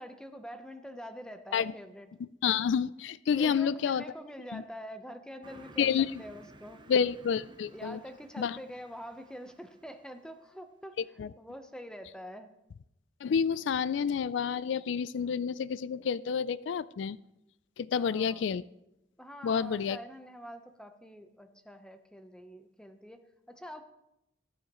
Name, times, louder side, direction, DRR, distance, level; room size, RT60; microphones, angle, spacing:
voice 1, 0.0-2.1 3.4-6.8 7.7-11.0 11.4-12.5 17.8-18.4 19.2-23.8, equal, 5° left, 8 dB, 0.8 m, -46 dB
voice 2, 2.4-4.0 4.5-4.6 5.8-6.1 6.9-8.0 8.4-8.6 11.0-11.3 13.2-17.2 17.8-18.6 19.4-20.0, left 7 dB, 70° left, 18 dB, 0.3 m, -29 dB
Car passing by, 5.4-10.4, right 2 dB, 25° right, 0.8 m, -55 dB
20.0 x 9.2 x 3.0 m, 0.87 s
head